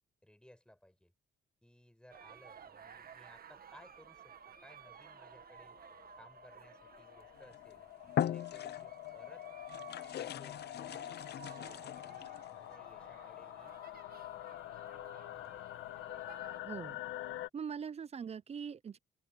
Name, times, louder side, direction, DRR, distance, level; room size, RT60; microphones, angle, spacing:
voice 1, 0.2-1.1 1.6-5.8 6.2-9.5 10.2-13.7 15.3-15.7, left 1 dB, 5° left, 6.1 m, -61 dB
sound 1, 2.1-16.6, right 7 dB, 50° right, 1.8 m, -56 dB
sound 2, 4.5-17.5, left 15 dB, 90° left, 1.3 m, -47 dB
sound 3, 7.4-7.6 8.1-9.1 9.7-12.4, left 10 dB, 55° left, 0.6 m, -39 dB
voice 2, 16.6-17.0 17.5-19.0, right 7 dB, 30° right, 0.6 m, -42 dB
open air
cardioid pair, 90°, 20 cm